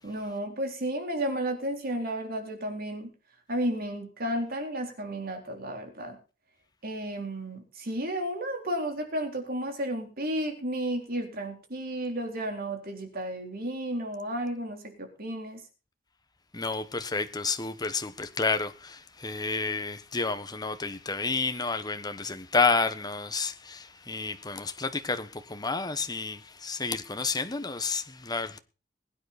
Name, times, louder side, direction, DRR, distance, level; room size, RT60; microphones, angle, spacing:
voice 1, 0.0-3.1 3.5-6.2 6.8-15.6, right 1 dB, 55° right, 3.9 m, -32 dB
voice 2, 16.5-28.6, left 4 dB, 20° left, 1.3 m, -30 dB
21.5 x 9.6 x 4.3 m
head